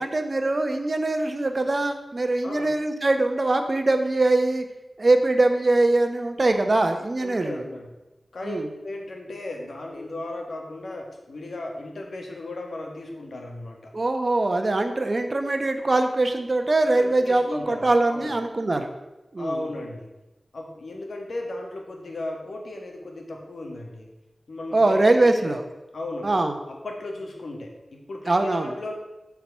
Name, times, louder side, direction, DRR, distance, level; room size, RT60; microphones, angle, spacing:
voice 1, 0.0-4.6 5.0-7.6 8.4-8.7 13.9-18.9 19.3-19.6 24.7-25.6 26.2-26.6 28.3-28.7, right 2 dB, 45° right, 6 dB, 1.0 m, -22 dB
voice 2, 2.4-2.7 7.2-7.9 8.3-13.9 16.9-18.3 19.4-20.1 20.5-24.1 24.5-25.6 25.9-26.3 26.7-28.9, left 2 dB, 85° left, 1 dB, 1.7 m, -36 dB
8.1 x 4.8 x 7.3 m, 1.0 s
wide cardioid pair, 80°, 0 cm